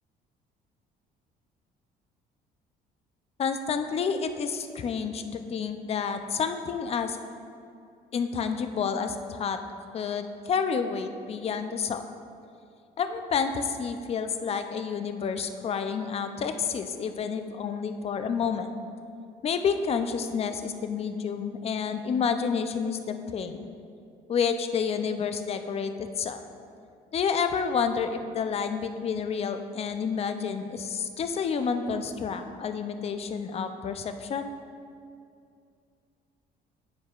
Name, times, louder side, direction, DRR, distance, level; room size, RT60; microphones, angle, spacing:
voice 1, 3.4-7.2 8.1-9.6 9.9-12.0 13.0-18.7 19.4-23.6 24.3-26.4 27.1-34.5, left 6 dB, 35° left, 8 dB, 0.4 m, -29 dB
9.9 x 4.7 x 2.4 m, 2.4 s
cardioid pair, 110°, 17 cm